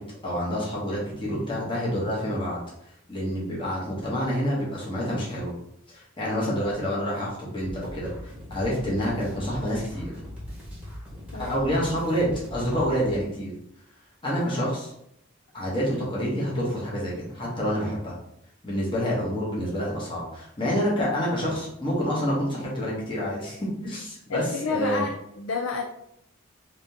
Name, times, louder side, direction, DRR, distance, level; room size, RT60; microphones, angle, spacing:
voice 1, 0.2-2.6 3.1-5.5 5.9-10.1 11.4-13.5 14.2-14.9 15.5-18.1 18.6-25.1, equal, 25° left, -6 dB, 1.1 m, -28 dB
sound 1, 7.6-13.1, equal, 5° right, 1.1 m, -40 dB
voice 2, 24.3-25.8, left 4 dB, 80° left, 1 dB, 0.4 m, -29 dB
3.7 x 2.8 x 3.5 m, 0.77 s
head